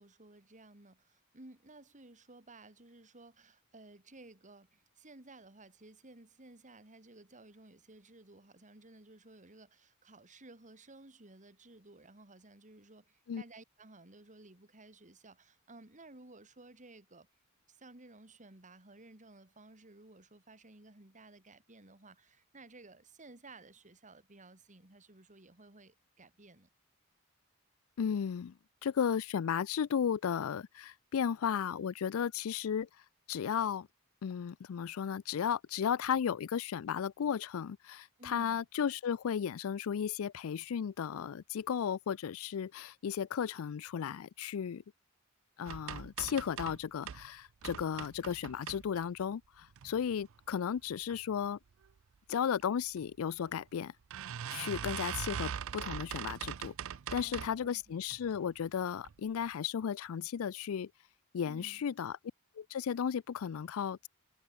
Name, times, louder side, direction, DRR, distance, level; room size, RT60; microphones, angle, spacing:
voice 1, 0.0-17.3 17.7-26.7 38.2-38.7 57.1-57.8 61.5-61.8, right 2 dB, 35° right, 3.1 m, -56 dB
voice 2, 28.0-28.5 28.8-32.9 33.3-33.9 34.2-44.8 45.6-51.6 52.3-53.9 54.5-56.7 57.1-60.9 61.3-62.2 62.6-64.1, left 7 dB, 70° left, 0.4 m, -34 dB
sound 1, 45.7-47.3 47.6-49.2 49.7-50.3 50.8-51.2 51.4-51.5 51.8-51.9 53.0-53.1 53.5-53.6 54.1-57.7 58.1-58.5 59.0-59.1 59.5-59.6, right 8 dB, 65° right, 0.5 m, -41 dB
head